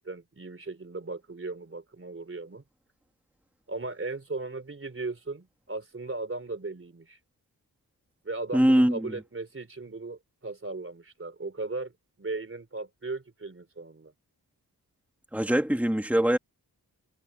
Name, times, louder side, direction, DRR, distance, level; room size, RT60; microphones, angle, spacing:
voice 1, 0.0-2.6 3.7-7.2 8.2-11.9 12.2-14.1, right 3 dB, 35° right, 3.7 m, -37 dB
voice 2, 8.5-9.1 15.3-16.4, equal, 5° right, 2.1 m, -22 dB
wide cardioid pair, 115°, 38 cm